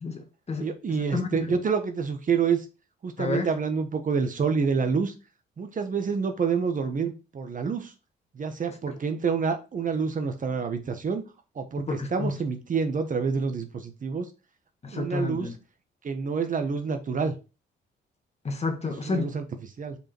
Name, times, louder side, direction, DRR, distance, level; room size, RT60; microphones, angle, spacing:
voice 1, 0.0-0.7 1.1-1.5 3.2-3.5 11.9-12.3 14.8-15.5 18.4-19.4, left 3 dB, 30° left, 1.7 m, -30 dB
voice 2, 0.6-2.6 3.0-5.1 5.6-7.9 8.3-11.2 11.5-14.3 14.9-15.5 16.0-17.3 19.1-20.0, right 5 dB, 40° right, 1.2 m, -28 dB
5.2 x 5.1 x 4.5 m
cardioid pair, 90°, 20 cm